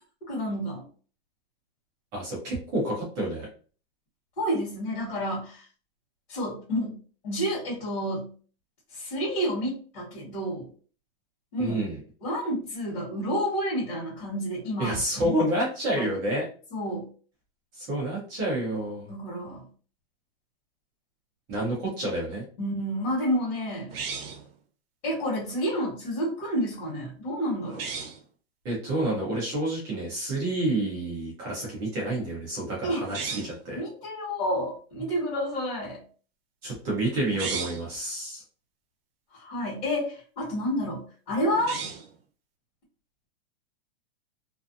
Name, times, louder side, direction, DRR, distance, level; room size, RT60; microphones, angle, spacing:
voice 1, 0.3-0.8 4.4-5.6 6.3-7.0 7.2-8.3 8.9-10.7 11.5-11.8 12.2-15.0 15.2-15.5 15.9-16.1 16.7-17.1 19.1-19.7 22.6-23.9 25.0-27.9 32.8-33.0 33.7-36.0 39.3-41.8, equal, 55° left, -4 dB, 1.3 m, -29 dB
voice 2, 2.1-3.5 11.6-12.0 14.8-16.4 17.8-19.1 21.5-22.4 28.6-33.8 36.6-38.4, right 1 dB, 10° right, -4 dB, 0.4 m, -29 dB
sound 1, 23.9-24.5 27.7-28.2 33.0-33.6 37.2-37.9 41.5-42.2, right 5 dB, 65° right, 0.6 m, -35 dB
2.4 x 2.2 x 2.5 m, 0.40 s
supercardioid pair, 170°, 32 cm